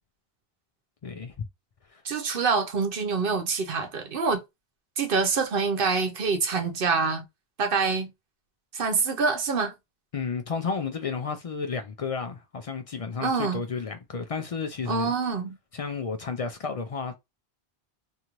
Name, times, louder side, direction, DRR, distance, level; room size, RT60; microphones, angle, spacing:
voice 1, 1.0-1.5 1.9-2.0 10.1-15.1 15.7-17.2, left 5 dB, 55° left, 0.4 m, -32 dB
voice 2, 2.0-4.4 5.0-7.2 7.6-8.1 8.7-9.7 13.2-13.6 14.9-15.5, right 4 dB, 60° right, 0.9 m, -26 dB
2.7 x 2.5 x 2.9 m
omnidirectional pair, 1.1 m